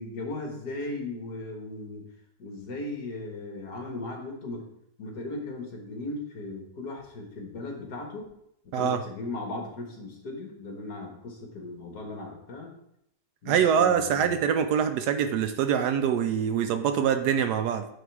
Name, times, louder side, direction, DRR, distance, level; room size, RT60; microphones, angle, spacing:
voice 1, 0.0-2.0 2.4-4.7 5.0-8.3 8.6-12.7 13.4-14.5, left 2 dB, 65° left, 1 dB, 2.0 m, -37 dB
voice 2, 13.5-17.9, right 8 dB, 75° right, 8 dB, 1.0 m, -24 dB
9.1 x 3.4 x 4.6 m, 0.77 s
omnidirectional pair, 1.9 m